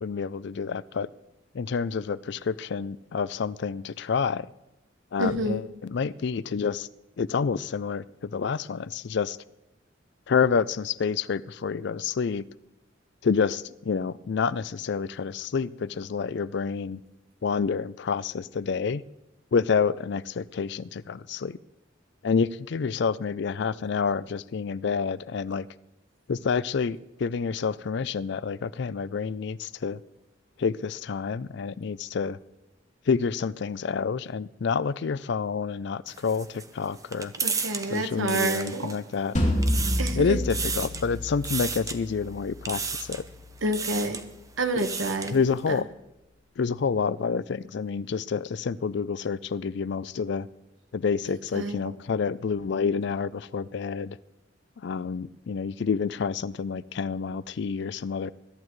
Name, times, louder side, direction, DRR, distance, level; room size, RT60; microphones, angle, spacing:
voice 1, 0.0-1.1 1.5-4.5 5.1-6.9 7.2-9.4 10.3-12.5 13.2-17.0 17.4-19.0 19.5-21.6 22.2-25.7 26.3-30.0 30.6-32.4 33.1-37.3 37.9-39.3 40.2-43.2 45.3-45.8 46.6-50.5 50.9-54.2 54.8-58.3, left 5 dB, 60° left, 18 dB, 0.4 m, -28 dB
voice 2, 5.2-5.6 37.4-38.9 40.0-40.4 43.6-44.2 44.6-45.4 45.7-45.8 51.5-51.9, right 2 dB, 85° right, 7 dB, 1.3 m, -28 dB
sound 1, 36.1-39.1 39.5-40.2 40.5-41.1 41.4-42.0 42.6-43.3 43.7-44.2 44.6-45.4, right 5 dB, 15° right, 0.8 m, -33 dB
sound 2, 39.4-44.4, left 1 dB, 40° left, 3.2 m, -30 dB
21.5 x 11.5 x 3.2 m, 0.97 s
head